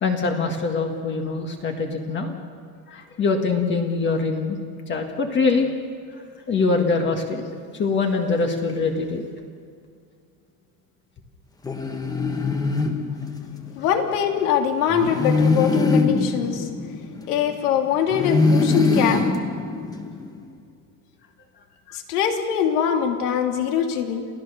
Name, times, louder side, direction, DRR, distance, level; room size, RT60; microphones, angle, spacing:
voice 1, 0.0-2.3 2.9-4.6 4.9-5.7 6.5-7.4 7.7-9.2, left 4 dB, 25° left, 3 dB, 1.7 m, -23 dB
sound 1, 11.6-13.7 14.9-17.6 18.1-20.4, left 3 dB, 10° left, 1.1 m, -22 dB
voice 2, 13.8-16.7 17.3-19.3 21.9-24.3, left 8 dB, 75° left, 3 dB, 3.2 m, -23 dB
28.5 x 16.0 x 6.8 m, 2.3 s
supercardioid pair, 155°, 46 cm